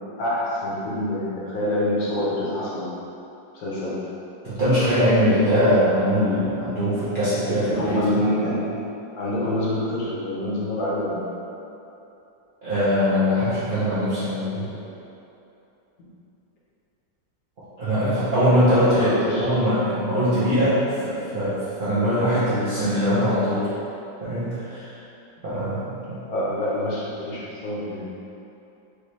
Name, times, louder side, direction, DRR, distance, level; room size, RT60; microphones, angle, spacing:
voice 1, 0.2-2.9 3.5-4.1 7.6-8.8 9.2-11.2 14.5-14.7 18.3-19.5 26.3-28.1, left 1 dB, 60° left, -7 dB, 1.2 m, -26 dB
voice 2, 4.4-8.2 12.6-14.7 17.8-23.7 24.2-25.0 25.4-26.2, equal, 60° right, -13 dB, 0.5 m, -22 dB
4.8 x 2.9 x 3.1 m, 2.9 s
omnidirectional pair, 2.0 m